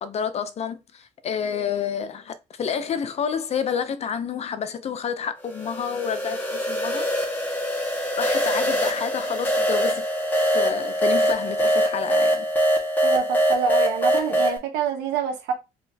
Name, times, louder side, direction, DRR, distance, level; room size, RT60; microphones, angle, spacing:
voice 1, 0.0-7.1 8.2-10.1 10.5-12.5, left 7 dB, 40° left, 0.5 m, -29 dB
sound 1, 5.5-14.6, equal, 10° left, 1.4 m, -23 dB
voice 2, 13.0-15.5, right 6 dB, 90° right, 1.0 m, -26 dB
4.2 x 3.0 x 2.7 m
cardioid pair, 110°, 17 cm